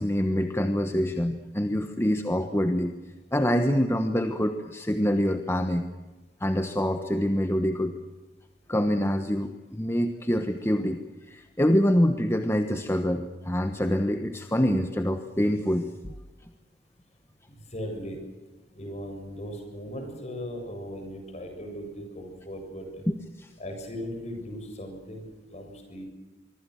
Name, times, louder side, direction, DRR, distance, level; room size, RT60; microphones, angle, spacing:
voice 1, 0.0-2.9 3.3-5.9 6.4-7.9 8.7-11.0 11.3-16.1 23.1-23.5, equal, 15° left, 7 dB, 1.2 m, -25 dB
voice 2, 17.5-18.2 18.7-23.0 23.6-25.2 25.5-26.0, equal, 40° left, 4 dB, 7.4 m, -38 dB
25.0 x 24.0 x 6.5 m, 1.2 s
head